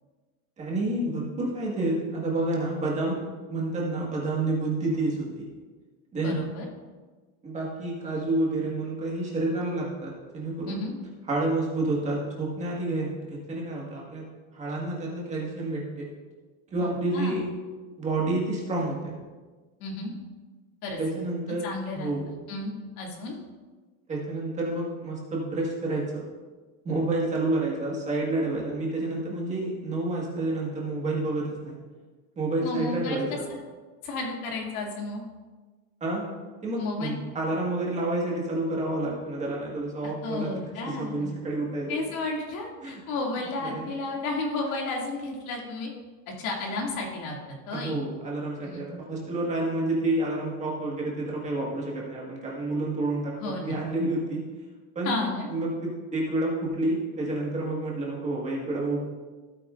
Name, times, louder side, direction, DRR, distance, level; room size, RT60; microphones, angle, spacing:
voice 1, 0.6-3.2 3.5-5.5 6.1-6.4 7.4-10.8 11.3-14.2 14.5-16.1 16.7-17.4 18.0-19.1 21.0-21.6 21.9-22.2 24.1-26.2 26.8-31.7 32.3-33.4 36.0-36.3 36.6-40.5 40.8-42.0 42.8-43.0 43.6-43.8 46.7-46.8 47.7-53.3 53.6-54.4 54.9-59.0, right 2 dB, 15° right, -4 dB, 1.7 m, -29 dB
voice 2, 6.2-6.7 10.7-10.9 16.8-17.4 19.8-20.1 20.8-21.0 21.6-22.1 22.5-23.4 32.6-33.2 34.0-35.2 36.8-37.2 40.0-41.4 41.9-45.9 46.4-48.0 48.6-48.9 53.4-53.8 55.0-55.5, left 2 dB, 80° left, -1 dB, 2.6 m, -33 dB
16.0 x 8.3 x 2.5 m, 1.3 s
cardioid pair, 175°, 41 cm